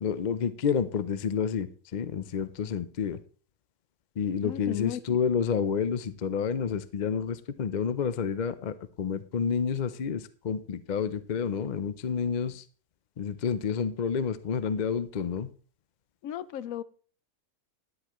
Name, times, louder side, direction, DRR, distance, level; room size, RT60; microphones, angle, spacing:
voice 1, 0.0-3.2 4.2-12.6 13.2-15.5, left 6 dB, 55° left, 14 dB, 0.5 m, -29 dB
voice 2, 4.4-5.0 16.2-16.8, left 11 dB, 80° left, 15 dB, 1.1 m, -35 dB
13.0 x 11.0 x 3.0 m, 0.41 s
omnidirectional pair, 1.4 m